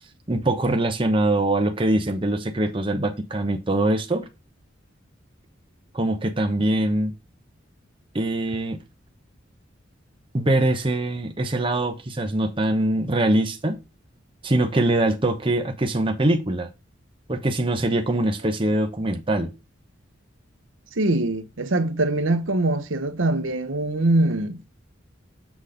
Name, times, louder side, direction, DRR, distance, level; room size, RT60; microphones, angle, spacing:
voice 1, 0.3-4.3 5.9-7.1 8.1-8.8 10.3-13.8 14.4-16.7 17.3-19.5, right 1 dB, 25° right, 0.9 m, -23 dB
voice 2, 20.9-24.6, right 2 dB, 85° right, 1.0 m, -23 dB
7.2 x 4.1 x 5.0 m
head